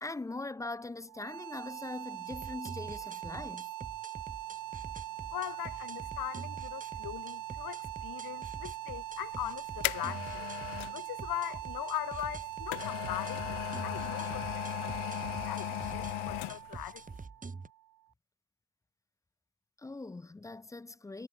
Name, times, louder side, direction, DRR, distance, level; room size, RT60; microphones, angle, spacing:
voice 1, 0.0-3.7 19.8-21.3, left 2 dB, 10° left, 0.3 m, -41 dB
sound 1, 1.1-18.0, right 14 dB, 40° right, 0.7 m, -42 dB
sound 2, 2.3-17.7, right 4 dB, 15° right, 1.5 m, -46 dB
voice 2, 5.3-10.4 10.9-17.0, left 14 dB, 45° left, 1.0 m, -40 dB
sound 3, 9.2-11.0 12.2-16.8 17.2-17.3, left 26 dB, 70° left, 0.7 m, -37 dB
supercardioid pair, 100°, 49 cm